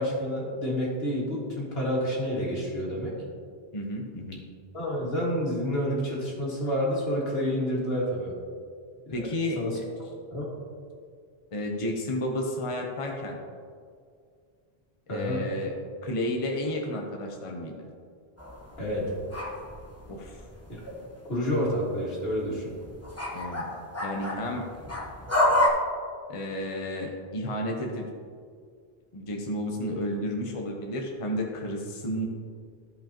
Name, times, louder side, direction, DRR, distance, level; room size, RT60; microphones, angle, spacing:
voice 1, 0.0-3.2 4.7-8.3 9.1-9.3 9.6-9.8 10.3-10.4 15.1-15.4 18.8-19.1 20.7-21.0 21.3-22.7, equal, 75° left, -5 dB, 2.3 m, -29 dB
voice 2, 3.7-4.4 9.1-9.8 11.5-13.4 15.1-15.7 16.0-17.9 20.1-20.4 23.3-23.7 24.0-24.6 26.3-28.1 29.1-32.3, left 1 dB, 35° left, 0 dB, 0.9 m, -32 dB
sound 1, 18.4-21.0 21.3-25.7, left 1 dB, 15° left, 1.1 m, -30 dB
14.0 x 5.3 x 2.9 m, 2.2 s
omnidirectional pair, 1.0 m